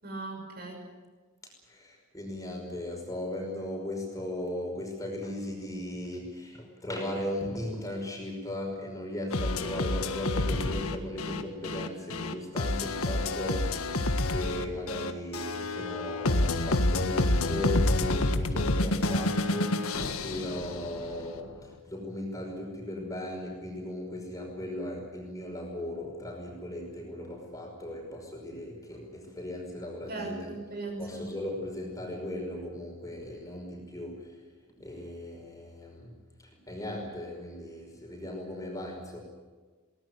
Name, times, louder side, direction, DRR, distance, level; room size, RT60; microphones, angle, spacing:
voice 1, 0.0-0.8 30.1-31.3, right 2 dB, 45° right, 1 dB, 6.1 m, -38 dB
voice 2, 1.7-14.1 14.3-21.5 21.9-30.5 31.0-34.2 34.8-36.1 36.6-39.2, left 1 dB, 15° left, 1 dB, 5.4 m, -37 dB
sound 1, 9.3-21.3, left 2 dB, 85° left, 1.7 m, -28 dB
22.0 x 19.0 x 9.4 m, 1.4 s
head